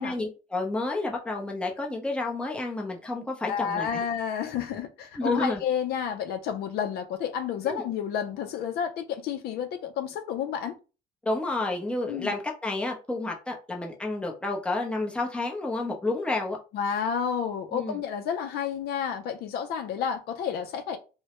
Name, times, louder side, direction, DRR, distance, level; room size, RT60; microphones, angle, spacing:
voice 1, 0.0-4.0 5.2-5.6 7.6-7.8 11.2-16.6 17.7-18.0, left 2 dB, 5° left, 0.6 m, -30 dB
voice 2, 3.5-10.7 12.1-12.3 16.7-21.0, left 8 dB, 70° left, 0.4 m, -30 dB
2.1 x 2.0 x 2.9 m
cardioid pair, 110°, 17 cm